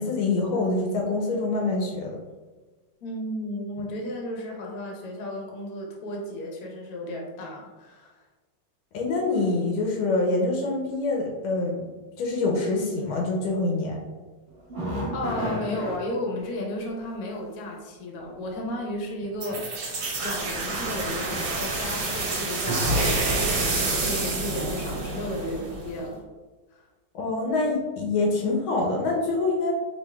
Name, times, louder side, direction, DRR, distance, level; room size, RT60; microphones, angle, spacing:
voice 1, 0.0-2.2 8.9-11.9 12.2-14.0 27.1-29.8, left 3 dB, 80° left, -1 dB, 1.4 m, -25 dB
voice 2, 3.0-8.1 15.1-19.7 20.2-23.2 23.5-26.2 26.7-26.8, left 1 dB, 60° left, -1 dB, 1.0 m, -33 dB
sound 1, 14.5-16.0 18.2-18.3 19.2-19.7 20.0-20.2 20.9-21.3 21.6-21.8 22.2-22.3, right 1 dB, 40° right, 1.3 m, -32 dB
sound 2, 19.4-26.0, right 2 dB, 60° right, 1.1 m, -28 dB
4.4 x 2.9 x 2.2 m, 1.3 s
omnidirectional pair, 2.3 m